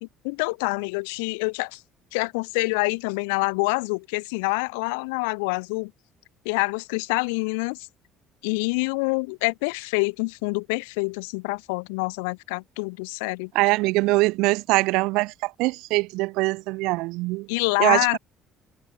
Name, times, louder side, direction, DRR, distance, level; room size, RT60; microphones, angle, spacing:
voice 1, 0.0-1.8 2.1-5.9 6.4-7.9 8.4-13.5 17.5-18.2, left 31 dB, 85° left, 1.1 m, -26 dB
voice 2, 13.5-17.5 17.8-18.1, right 22 dB, 75° right, 1.0 m, -22 dB
supercardioid pair, 80°, 0 cm